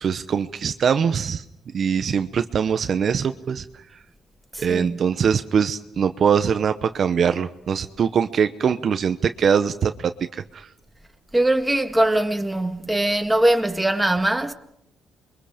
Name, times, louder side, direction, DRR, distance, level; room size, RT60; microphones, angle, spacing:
voice 1, 0.0-1.4 1.7-3.6 4.6-10.7, right 7 dB, 55° right, 0.9 m, -22 dB
voice 2, 4.5-5.0 11.3-14.5, right 1 dB, 10° right, 1.9 m, -21 dB
28.5 x 23.0 x 5.1 m
cardioid pair, 90°, 0 cm